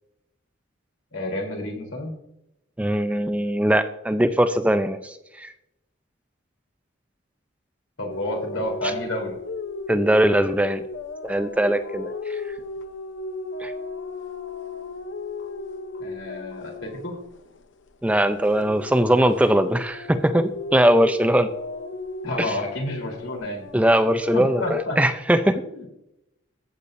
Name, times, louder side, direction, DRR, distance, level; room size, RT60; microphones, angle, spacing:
voice 1, 1.1-2.1 8.0-9.4 16.0-17.2 22.2-23.7 24.3-25.0 25.5-25.9, left 1 dB, 90° left, 2 dB, 3.4 m, -30 dB
voice 2, 2.8-5.5 9.9-10.8 11.2-12.1 13.6-13.7 18.0-21.5 22.4-22.5 23.7-25.6, right 1 dB, 5° right, 9 dB, 0.4 m, -20 dB
sound 1, 8.1-17.9 18.2-24.8, left 3 dB, 65° left, 0.7 m, -35 dB
15.0 x 8.6 x 2.6 m, 0.82 s
head